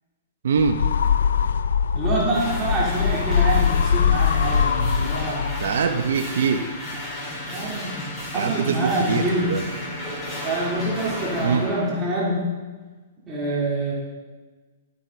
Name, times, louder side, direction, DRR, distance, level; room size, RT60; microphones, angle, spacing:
voice 1, 0.4-0.8 5.6-6.7 8.3-9.6 11.4-11.7, right 5 dB, 75° right, 6 dB, 0.9 m, -23 dB
sound 1, 0.6-5.9, left 7 dB, 80° left, 0.4 m, -22 dB
voice 2, 1.9-5.5 7.5-9.5 10.4-12.4 13.3-13.9, right 1 dB, 20° right, -5 dB, 3.2 m, -26 dB
sound 2, 2.3-11.9, left 1 dB, 15° left, 4.0 m, -33 dB
12.0 x 8.9 x 4.0 m, 1.3 s
hypercardioid pair, 145°, 0 cm